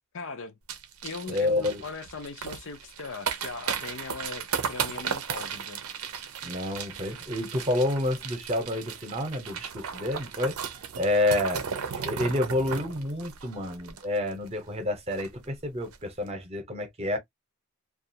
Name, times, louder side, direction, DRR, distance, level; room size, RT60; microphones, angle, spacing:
voice 1, 0.1-0.6 1.0-5.8, left 4 dB, 60° left, 0.6 m, -39 dB
sound 1, 0.7-14.5 14.8-14.9 15.1-15.4 15.8-16.0, right 7 dB, 80° right, 0.6 m, -35 dB
voice 2, 1.3-1.8 6.4-10.6 11.0-17.2, left 1 dB, 30° right, 0.8 m, -29 dB
2.4 x 2.3 x 2.7 m
head